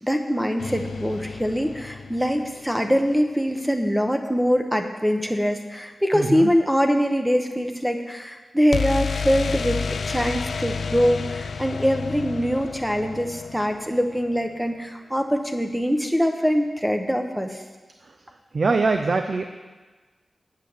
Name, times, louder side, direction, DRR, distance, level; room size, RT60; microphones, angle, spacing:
voice 1, 0.0-17.6, equal, ahead, 5 dB, 0.8 m, -23 dB
sound 1, 0.6-2.6 8.7-14.5, left 5 dB, 70° left, 0.4 m, -30 dB
voice 2, 6.1-6.5 18.1-18.2 18.5-19.4, right 3 dB, 50° right, 6 dB, 0.5 m, -23 dB
8.5 x 8.1 x 6.5 m, 1.3 s
wide cardioid pair, 150°, 0 cm